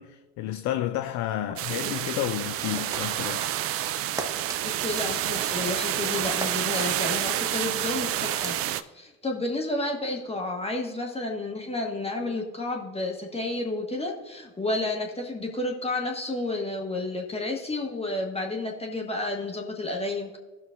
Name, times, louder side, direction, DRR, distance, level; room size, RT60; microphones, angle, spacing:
voice 1, 0.0-3.4, left 12 dB, 40° left, 0.5 m, -31 dB
sound 1, 1.6-8.8, right 12 dB, 35° right, 0.4 m, -29 dB
sound 2, 2.7-3.3 4.2-4.6 6.4-6.9 8.2-8.6, right 1 dB, 10° right, 0.8 m, -36 dB
voice 2, 4.6-8.6 8.9-20.4, left 2 dB, 15° left, 1.3 m, -31 dB
16.0 x 6.0 x 2.4 m
figure-of-eight pair, 70°, 43 cm